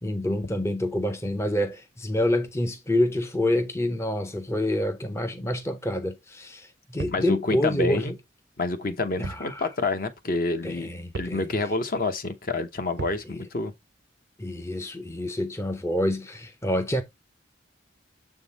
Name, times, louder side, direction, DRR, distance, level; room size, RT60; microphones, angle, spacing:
voice 1, 0.0-8.2 9.2-9.7 10.6-11.5 13.3-13.4 14.4-17.0, left 1 dB, 15° left, 0.5 m, -27 dB
sound 1, 7.0-7.3 9.2-9.5 9.8-9.9 11.1-11.4 13.0-13.3, right 3 dB, 60° right, 0.5 m, -36 dB
voice 2, 7.1-8.1 8.6-10.9 11.1-13.7, left 2 dB, 45° left, 0.7 m, -28 dB
6.9 x 3.7 x 4.0 m
head